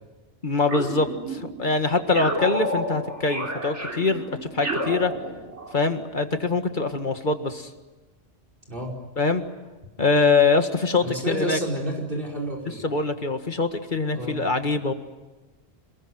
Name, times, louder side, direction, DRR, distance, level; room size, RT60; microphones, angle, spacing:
voice 1, 0.4-5.1 5.7-7.7 9.2-9.4 10.0-11.6 12.8-14.9, left 3 dB, 45° left, 7 dB, 2.0 m, -23 dB
sound 1, 0.7-1.6 2.1-5.8, right 1 dB, 90° right, 4.3 m, -31 dB
voice 2, 11.0-12.9 14.1-14.4, right 1 dB, 50° right, 2 dB, 5.3 m, -30 dB
27.5 x 21.5 x 9.4 m, 1.2 s
omnidirectional pair, 1.2 m